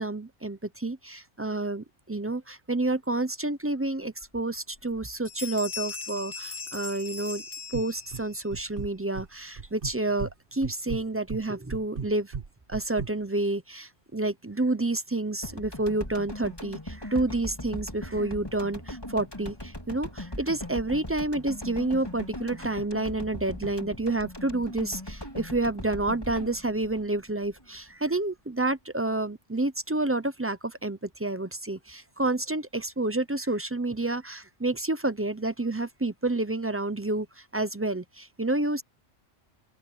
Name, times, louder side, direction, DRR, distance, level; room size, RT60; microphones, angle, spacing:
voice 1, 0.0-7.4 7.7-12.3 12.7-37.3 37.5-38.8, right 2 dB, 15° right, 0.5 m, -29 dB
sound 1, 4.2-4.3 4.8-5.0 5.3-8.4, left 5 dB, 60° left, 2.8 m, -39 dB
sound 2, 7.7-8.2 8.5-9.3 9.6-10.3 10.6-13.1, right 5 dB, 45° right, 1.3 m, -35 dB
sound 3, 15.4-27.9, left 1 dB, 20° left, 3.4 m, -39 dB
open air
omnidirectional pair, 1.3 m